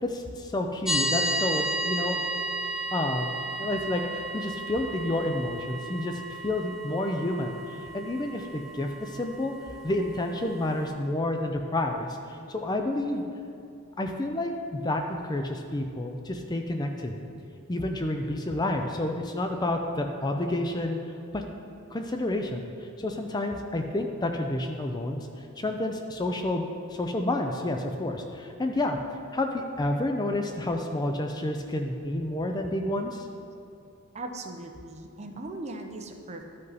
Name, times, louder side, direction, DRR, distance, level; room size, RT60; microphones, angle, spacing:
voice 1, 0.0-2.2 2.9-9.5 9.8-13.3 14.0-17.1 17.7-21.0 21.3-21.4 21.9-25.3 25.6-26.6 26.9-29.0 29.3-33.3, left 1 dB, 20° left, 4 dB, 0.4 m, -30 dB
sound 1, 0.9-10.9, right 1 dB, ahead, 0.9 m, -33 dB
voice 2, 34.1-36.4, right 2 dB, 30° right, 4 dB, 0.6 m, -39 dB
12.0 x 5.4 x 4.1 m, 2.7 s
head